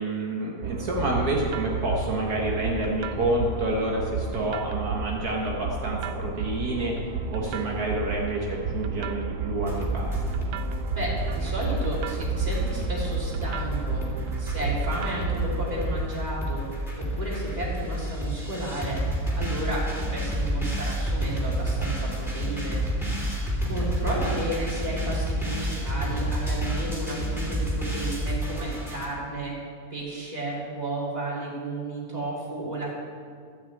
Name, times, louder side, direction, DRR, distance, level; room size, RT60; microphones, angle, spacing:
voice 1, 0.0-10.2 24.0-24.4, right 1 dB, 70° right, -2 dB, 1.8 m, -29 dB
sound 1, 0.6-16.1, right 6 dB, 85° right, 1.2 m, -32 dB
sound 2, 9.6-29.1, equal, ahead, 2.9 m, -30 dB
voice 2, 10.9-14.0 14.4-16.6 17.0-19.0 19.4-22.8 23.6-29.5 29.9-33.0, right 1 dB, 25° right, -6 dB, 3.3 m, -33 dB
13.5 x 6.1 x 8.5 m, 2.2 s
omnidirectional pair, 1.7 m